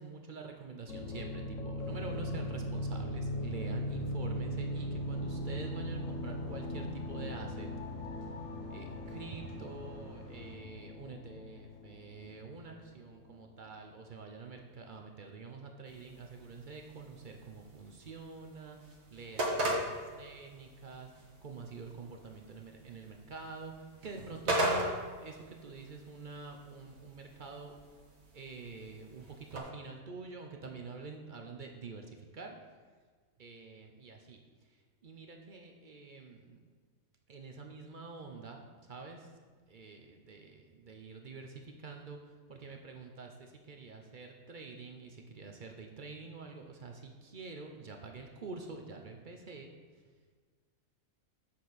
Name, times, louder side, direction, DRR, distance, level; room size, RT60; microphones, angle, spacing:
voice 1, 0.0-7.7 8.7-24.9 25.2-27.8 28.3-32.5 33.4-34.4 35.0-36.6 37.3-39.3 39.7-42.2 42.5-49.7, right 4 dB, 45° right, 3 dB, 0.7 m, -47 dB
sound 1, 0.9-13.6, left 1 dB, 65° left, 1.1 m, -39 dB
sound 2, 1.8-10.5, right 6 dB, 25° left, 1.3 m, -52 dB
sound 3, 15.9-29.6, right 1 dB, 70° right, 1.7 m, -39 dB
7.5 x 6.6 x 4.0 m, 1.5 s
omnidirectional pair, 1.5 m